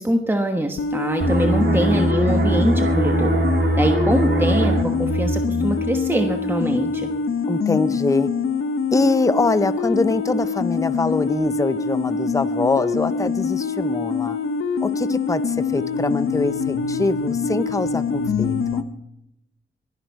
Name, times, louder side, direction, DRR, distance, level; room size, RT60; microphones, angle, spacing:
voice 1, 0.0-3.4 3.8-7.1, right 1 dB, 10° right, 4 dB, 1.2 m, -23 dB
sound 1, 0.8-18.8, left 5 dB, 80° left, 0.9 m, -24 dB
sound 2, 1.2-6.6 6.9-7.2, right 2 dB, 65° right, 2.9 m, -22 dB
voice 2, 7.5-8.3 8.9-14.4 14.8-18.9, left 3 dB, 15° left, 13 dB, 0.6 m, -23 dB
22.5 x 10.5 x 4.7 m, 0.86 s
wide cardioid pair, 90°, 21 cm